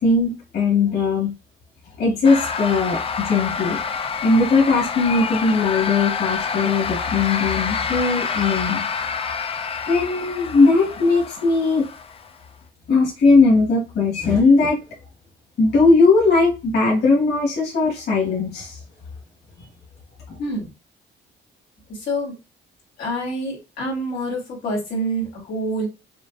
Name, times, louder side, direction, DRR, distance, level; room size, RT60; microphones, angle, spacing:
voice 1, 0.0-1.3 2.0-3.8 4.2-8.8 9.9-11.9 12.9-14.8 15.6-18.8 20.3-20.4, left 3 dB, 60° left, -3 dB, 2.2 m, -18 dB
sound 1, 2.2-12.4, left 6 dB, 30° left, 0.4 m, -27 dB
voice 2, 23.0-25.9, right 1 dB, 90° left, -4 dB, 2.9 m, -26 dB
6.8 x 2.6 x 2.7 m, 0.29 s
cardioid pair, 145°, 19 cm